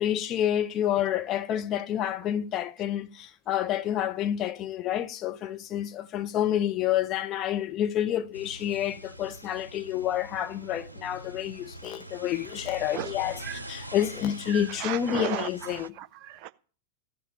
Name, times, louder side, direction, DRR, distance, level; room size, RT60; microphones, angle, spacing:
voice 1, 0.0-15.9, left 11 dB, 35° left, 0.8 m, -29 dB
sound 1, 8.3-15.9, right 1 dB, 85° right, 0.6 m, -44 dB
voice 2, 13.4-13.9 14.5-15.5 15.7-16.5, right 12 dB, 40° right, 0.8 m, -36 dB
15.0 x 5.1 x 8.8 m
figure-of-eight pair, 90°, 0 cm